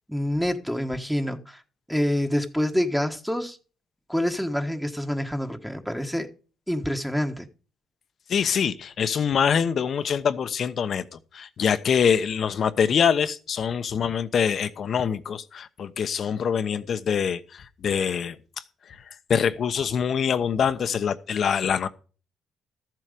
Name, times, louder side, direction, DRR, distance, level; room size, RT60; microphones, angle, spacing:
voice 1, 0.1-1.6 1.9-3.6 4.1-6.3 6.7-7.5, equal, ahead, 1.4 m, -27 dB
voice 2, 8.3-18.4 18.9-19.0 19.3-21.9, left 7 dB, 55° left, 1.0 m, -24 dB
13.5 x 7.7 x 5.1 m
cardioid pair, 80°, 0 cm